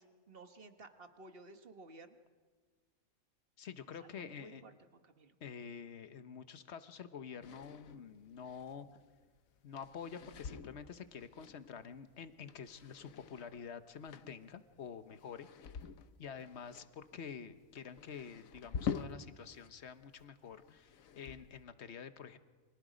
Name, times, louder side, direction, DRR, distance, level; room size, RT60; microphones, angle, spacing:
voice 1, 0.0-2.2 4.0-5.4, right 3 dB, 45° right, 7 dB, 1.6 m, -55 dB
voice 2, 3.6-4.6 5.4-8.9 9.6-15.5 16.2-22.4, left 7 dB, 55° left, 11 dB, 1.2 m, -48 dB
sound 1, 7.4-19.7 20.0-21.6, left 7 dB, 75° left, 1.3 m, -47 dB
30.0 x 25.0 x 5.1 m, 1.5 s
omnidirectional pair, 1.4 m